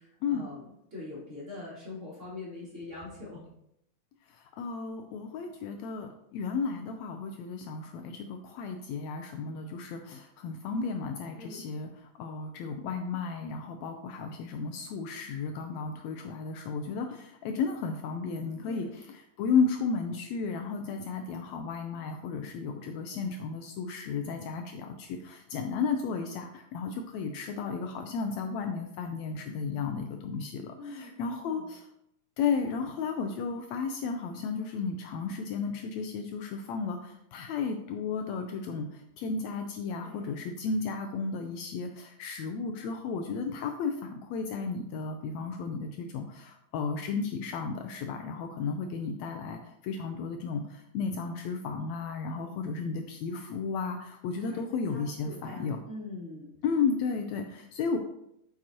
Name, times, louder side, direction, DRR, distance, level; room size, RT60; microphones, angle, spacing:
voice 1, 0.0-3.4 11.3-11.7 18.6-18.9 30.7-31.7 40.0-40.6 52.3-52.6 54.4-54.6 54.9-56.5, left 2 dB, 25° right, -8 dB, 3.0 m, -44 dB
voice 2, 4.3-31.9 32.4-55.8 56.6-58.0, left 5 dB, 80° left, 5 dB, 1.7 m, -33 dB
8.7 x 6.1 x 2.8 m, 0.78 s
omnidirectional pair, 3.4 m